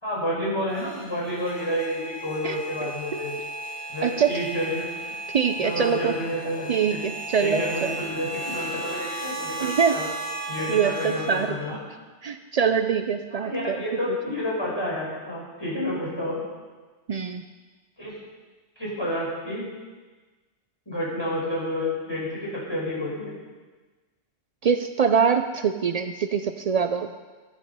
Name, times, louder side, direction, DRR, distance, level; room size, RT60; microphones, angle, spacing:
voice 1, 0.0-3.4 3.9-4.9 5.6-7.0 7.4-10.1 10.5-11.8 13.3-16.4 18.0-18.2 18.8-19.7 20.8-23.3, left 1 dB, 20° left, -7 dB, 4.9 m, -30 dB
sound 1, 0.7-11.5, right 1 dB, 70° left, 5.0 m, -35 dB
voice 2, 5.3-6.2 6.7-7.9 9.6-10.0 10.7-11.6 12.2-13.8 17.1-17.4 24.6-27.1, right 6 dB, 85° right, 8 dB, 0.3 m, -24 dB
14.5 x 8.2 x 5.5 m, 1.3 s
omnidirectional pair, 1.3 m